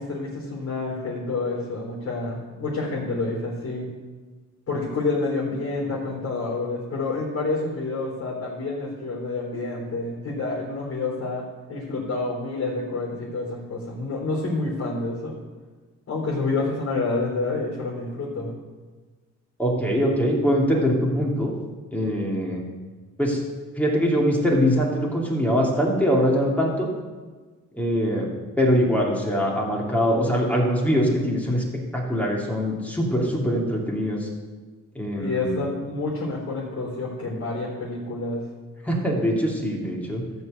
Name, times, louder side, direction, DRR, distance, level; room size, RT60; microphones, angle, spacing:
voice 1, 0.0-3.9 4.7-15.3 16.1-18.5 35.2-38.5, left 3 dB, 50° left, -7 dB, 3.7 m, -28 dB
voice 2, 19.6-21.5 21.9-22.6 23.2-23.4 23.8-26.9 27.8-28.3 28.6-31.6 31.9-34.3 34.9-35.6 38.9-40.2, equal, 5° left, -2 dB, 2.8 m, -23 dB
13.5 x 4.6 x 8.2 m, 1.4 s
cardioid pair, 90°, 30 cm